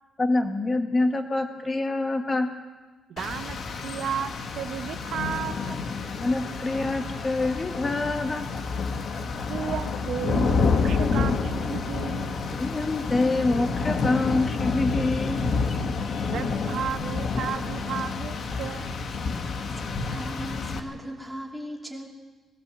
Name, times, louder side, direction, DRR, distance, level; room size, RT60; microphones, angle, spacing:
voice 1, 0.2-2.5 6.2-8.5 12.6-15.5, left 2 dB, 20° left, 5 dB, 1.8 m, -26 dB
voice 2, 3.1-5.8 9.5-12.4 16.3-19.0, right 8 dB, 60° right, 9 dB, 1.2 m, -34 dB
Rain, 3.2-20.8, left 4 dB, 50° left, 1.6 m, -29 dB
voice 3, 19.3-22.1, equal, 5° right, -1 dB, 2.9 m, -38 dB
21.0 x 16.5 x 7.7 m, 1.3 s
cardioid pair, 150°, 0 cm